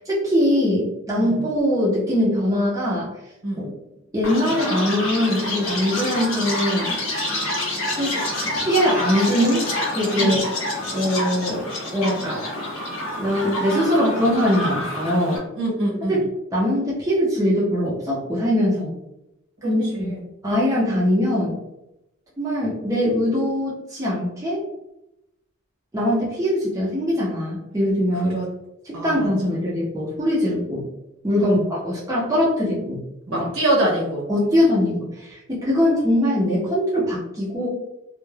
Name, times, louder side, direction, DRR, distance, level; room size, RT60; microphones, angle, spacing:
voice 1, 0.1-3.1 4.1-7.0 7.9-9.7 9.9-10.4 10.9-11.6 11.9-12.4 13.2-15.4 16.1-16.2 16.5-18.9 19.6-20.1 20.4-21.6 22.4-24.6 25.9-28.4 28.9-30.8 31.2-33.0 33.3-33.5 34.3-37.7, equal, 15° right, -7 dB, 0.5 m, -22 dB
voice 2, 3.4-3.7 10.2-10.4 15.5-16.2 19.6-20.2 28.1-28.5 28.9-29.3 31.4-31.7 33.3-34.3, right 1 dB, 75° right, -3 dB, 1.0 m, -25 dB
Chirp tweet, 4.2-15.4, left 1 dB, 75° left, 0.6 m, -27 dB
2.2 x 2.1 x 3.1 m, 0.91 s
head